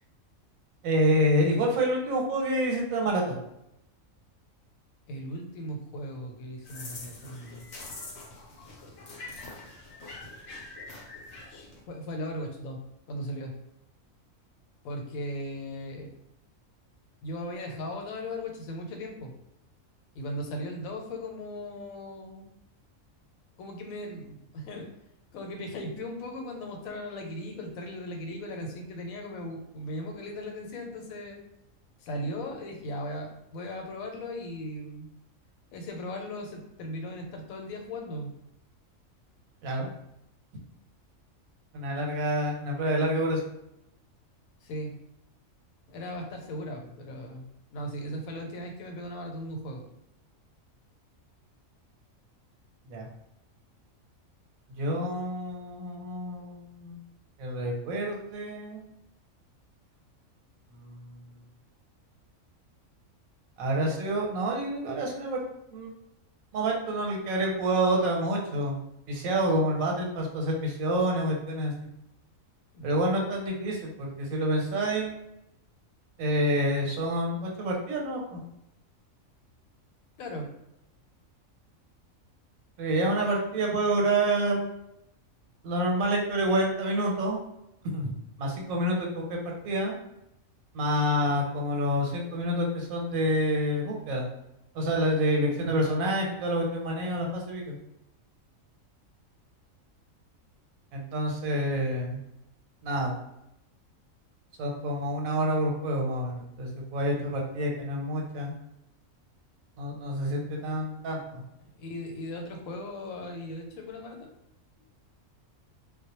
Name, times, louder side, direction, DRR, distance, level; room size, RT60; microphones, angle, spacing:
voice 1, 0.8-3.4 39.6-39.9 41.7-43.4 52.9-53.1 54.8-57.0 57.4-58.8 60.7-61.2 63.6-65.4 65.7-65.9 66.5-68.8 69.1-71.7 72.8-75.1 76.2-78.4 82.8-84.7 85.6-87.4 87.9-89.9 90.7-94.3 94.7-97.8 100.9-102.2 102.8-103.1 104.6-108.5 109.8-111.4, equal, 85° right, 0 dB, 1.1 m, -28 dB
voice 2, 5.1-7.6 11.9-12.8 13.1-13.5 14.8-16.1 17.2-19.3 20.2-22.5 23.6-24.9 25.3-31.4 32.0-35.1 35.7-38.3 44.6-44.9 45.9-47.5 47.7-49.8 72.7-73.0 80.2-80.5 95.6-95.7 107.2-107.4 111.8-114.3, left 1 dB, 85° left, 2 dB, 1.0 m, -37 dB
sound 1, 6.6-11.8, left 2 dB, 65° left, 0.8 m, -44 dB
2.2 x 2.0 x 2.8 m, 0.82 s
omnidirectional pair, 1.4 m